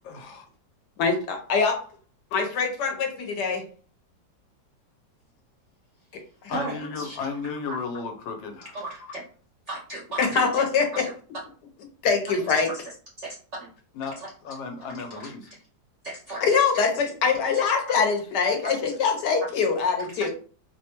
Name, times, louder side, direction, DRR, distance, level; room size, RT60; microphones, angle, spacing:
voice 1, 0.0-0.4 6.5-8.8 14.0-15.4, left 4 dB, 85° left, 5 dB, 1.4 m, -34 dB
voice 2, 1.0-1.8 2.3-3.6 10.2-10.9 12.0-12.7 16.4-20.3, left 5 dB, 70° left, 3 dB, 1.3 m, -23 dB
voice 3, 6.5-7.2 8.7-9.2 9.7-10.6 11.0-11.1 12.3-13.7 14.2-14.3 15.1-15.3 16.0-16.8 17.5-17.6 18.6-18.9 20.1-20.3, right 2 dB, 65° right, -2 dB, 0.7 m, -37 dB
4.7 x 2.2 x 2.9 m, 0.41 s
omnidirectional pair, 2.0 m